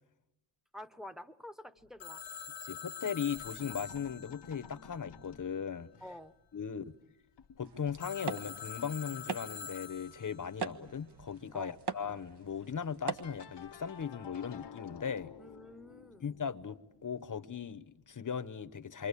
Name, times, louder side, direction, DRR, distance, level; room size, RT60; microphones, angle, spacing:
voice 1, 0.7-2.2 6.0-6.3 11.5-11.8 15.4-16.3, left 1 dB, ahead, 1.1 m, -48 dB
sound 1, 1.8-3.0 3.3-6.3 6.8-7.1 7.4-8.6 10.0-10.1 10.5-10.6 10.9-11.2 13.0-18.5, left 7 dB, 60° left, 1.0 m, -54 dB
Telephone, 2.0-5.6 8.0-10.5, left 8 dB, 90° left, 1.1 m, -46 dB
voice 2, 2.6-5.9 6.5-6.8 7.6-15.3 16.2-19.1, left 7 dB, 40° left, 1.0 m, -38 dB
sound 2, 7.6-14.1, right 5 dB, 60° right, 1.3 m, -43 dB
28.0 x 24.0 x 8.4 m
wide cardioid pair, 90°, 46 cm